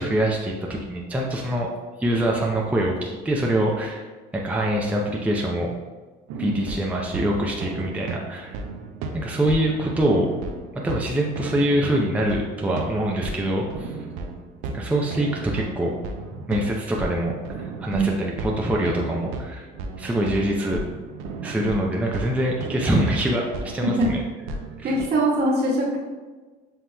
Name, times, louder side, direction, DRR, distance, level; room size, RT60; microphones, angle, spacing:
voice 1, 0.0-1.7 2.0-4.0 4.3-5.7 6.4-8.6 9.1-10.3 10.8-13.9 14.7-15.9 16.3-19.7 20.0-20.8 21.4-24.2 24.8-24.9, right 1 dB, 5° right, -2 dB, 0.5 m, -24 dB
sound 1, 6.3-25.1, right 3 dB, 80° right, 0.6 m, -34 dB
voice 2, 24.8-26.0, right 1 dB, 55° right, -4 dB, 1.4 m, -22 dB
7.3 x 2.9 x 2.2 m, 1.3 s
supercardioid pair, 90°, 21 cm